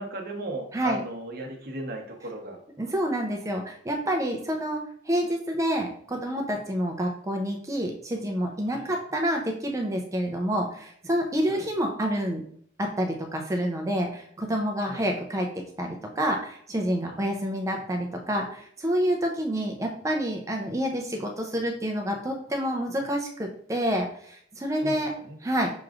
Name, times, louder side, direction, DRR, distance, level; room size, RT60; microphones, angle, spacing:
voice 1, 0.0-2.6 8.7-8.9 11.4-11.6 14.8-15.1 17.0-17.2 24.8-25.4, right 1 dB, 50° right, 2 dB, 0.8 m, -37 dB
voice 2, 2.8-12.4 12.8-25.1 25.4-25.7, equal, 15° right, 2 dB, 0.4 m, -28 dB
6.0 x 3.0 x 2.4 m, 0.64 s
head